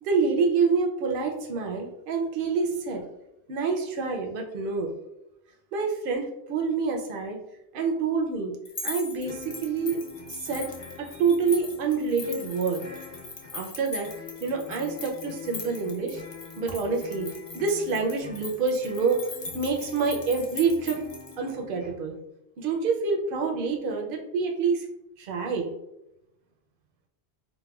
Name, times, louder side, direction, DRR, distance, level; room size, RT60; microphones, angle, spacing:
voice 1, 0.0-3.0 3.5-4.9 5.7-7.4 7.7-8.6 8.8-10.0 10.3-10.7 11.0-12.8 13.5-14.1 14.4-16.2 16.6-17.3 17.5-19.2 19.5-21.0 21.4-22.2 22.6-24.9 25.2-25.7, right 4 dB, 65° right, 2 dB, 0.7 m, -27 dB
sound 1, 8.6-21.3, left 3 dB, 45° left, 0.3 m, -40 dB
sound 2, 9.2-22.0, left 6 dB, 75° left, 1.0 m, -45 dB
4.1 x 2.2 x 2.3 m, 0.88 s
omnidirectional pair, 1.1 m